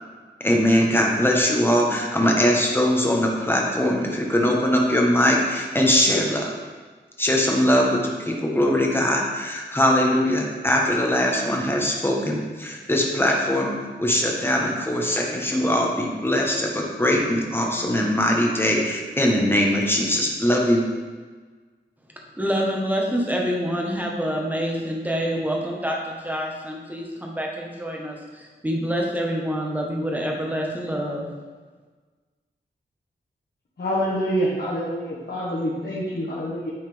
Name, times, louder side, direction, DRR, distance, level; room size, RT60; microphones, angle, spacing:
voice 1, 0.4-6.5 7.2-20.8, left 1 dB, 10° left, -1 dB, 1.2 m, -21 dB
voice 2, 22.4-31.3, equal, 10° right, -1 dB, 1.2 m, -27 dB
voice 3, 33.8-36.7, equal, 60° left, -7 dB, 1.5 m, -26 dB
9.5 x 4.0 x 3.5 m, 1.4 s
wide cardioid pair, 80°, 19 cm